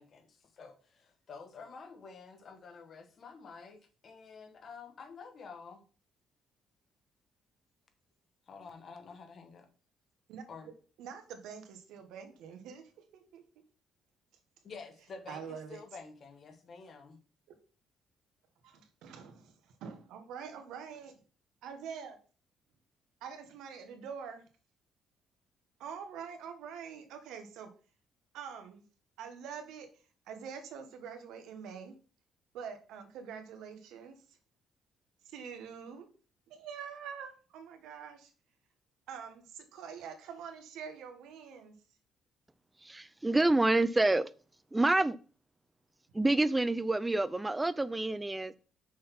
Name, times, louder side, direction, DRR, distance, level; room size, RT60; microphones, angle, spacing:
voice 1, 0.0-5.8 8.5-9.7 10.5-10.7 14.6-17.2, left 5 dB, 45° left, 1.2 m, -49 dB
voice 2, 11.0-13.4 15.3-15.8 18.6-21.2 21.6-22.2 23.2-24.4 25.8-27.7 28.3-28.8 29.2-31.9 32.5-34.2 35.2-36.1 36.5-38.3 39.1-41.7, right 7 dB, 90° right, 1.4 m, -45 dB
voice 3, 42.9-44.3 44.7-45.2 46.1-48.6, right 2 dB, 10° right, 0.5 m, -27 dB
6.3 x 4.0 x 5.8 m
cardioid pair, 120°, 0 cm